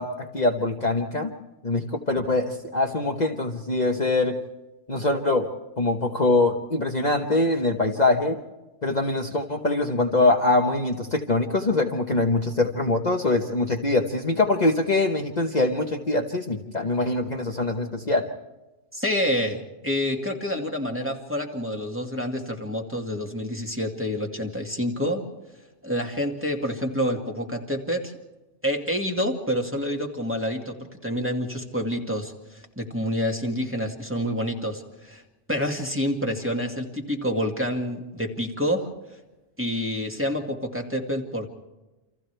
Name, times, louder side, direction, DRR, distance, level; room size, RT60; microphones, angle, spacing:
voice 1, 0.0-1.3 1.6-4.4 4.9-5.5 5.8-8.4 8.8-18.3, left 2 dB, 35° left, 2 dB, 1.3 m, -23 dB
voice 2, 18.9-25.2 25.8-28.1 28.6-30.8 31.0-35.2 35.5-39.2 39.6-41.5, equal, 10° right, 1 dB, 2.1 m, -28 dB
29.0 x 26.5 x 3.4 m, 1.1 s
omnidirectional pair, 1.3 m